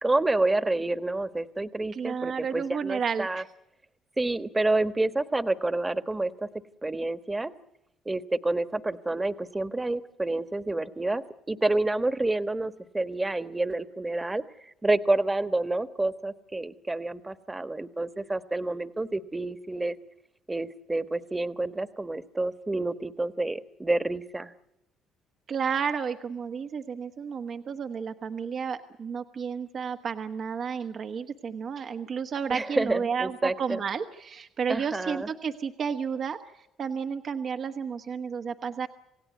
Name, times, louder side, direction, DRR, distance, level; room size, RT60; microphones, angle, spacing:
voice 1, 0.0-3.4 4.2-6.5 6.8-7.5 8.0-11.2 11.5-20.0 20.5-24.5 32.5-33.8 34.7-35.3, right 2 dB, 15° right, 12 dB, 1.4 m, -28 dB
voice 2, 1.9-3.4 25.5-38.9, right 6 dB, 50° right, 6 dB, 1.2 m, -32 dB
28.0 x 16.5 x 9.4 m, 0.88 s
supercardioid pair, 75°, 0 cm